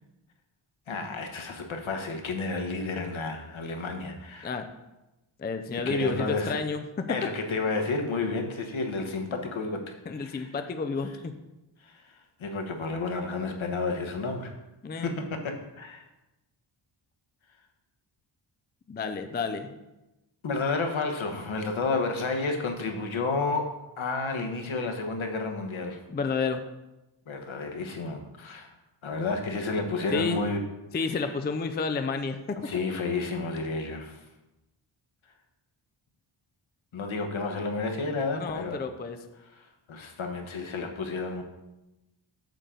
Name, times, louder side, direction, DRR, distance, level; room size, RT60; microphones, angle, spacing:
voice 1, 0.9-4.5 5.7-6.6 7.1-9.9 10.1-10.5 11.8-12.1 12.4-14.5 15.0-16.1 20.4-23.7 24.0-26.0 27.3-28.7 29.0-30.6 31.1-31.3 32.6-34.2 36.9-38.8 39.5-41.4, left 3 dB, 70° left, 4 dB, 1.2 m, -31 dB
voice 2, 5.4-7.2 10.1-11.3 14.8-15.1 18.9-19.7 26.1-26.6 30.1-30.4 30.9-32.7 38.4-39.2, left 4 dB, 25° left, 8 dB, 0.3 m, -30 dB
9.1 x 6.9 x 3.8 m, 0.99 s
wide cardioid pair, 170°, 49 cm